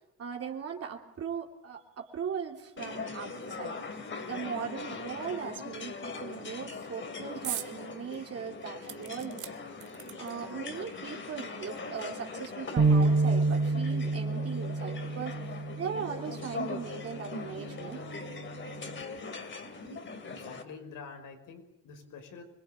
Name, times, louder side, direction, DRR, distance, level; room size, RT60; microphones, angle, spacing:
voice 1, 0.2-4.0 4.3-9.5 10.2-15.4 15.8-18.0, right 7 dB, 50° right, 1 dB, 3.1 m, -39 dB
sound 1, 2.8-20.6, left 4 dB, 40° left, 3.0 m, -41 dB
sound 2, 7.4-7.7 8.1-8.2 8.9-10.5 11.4-11.5 11.8-11.9, right 11 dB, 70° right, 1.6 m, -40 dB
sound 3, 12.8-19.0, right 3 dB, 30° right, 2.1 m, -29 dB
voice 2, 20.3-22.4, left 5 dB, 80° left, 7 dB, 5.2 m, -47 dB
25.5 x 22.0 x 9.1 m, 0.79 s
cardioid pair, 140°, 31 cm